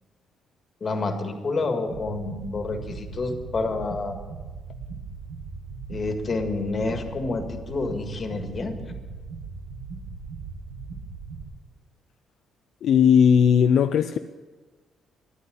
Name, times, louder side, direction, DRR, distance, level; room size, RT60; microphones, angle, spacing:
voice 1, 0.8-4.2 5.9-8.8, left 3 dB, 40° left, 1.9 m, -28 dB
sound 1, 1.9-11.4, right 4 dB, 85° right, 1.9 m, -38 dB
voice 2, 12.8-14.2, left 7 dB, 70° left, 0.4 m, -17 dB
11.5 x 9.6 x 7.9 m
cardioid pair, 90°, 0 cm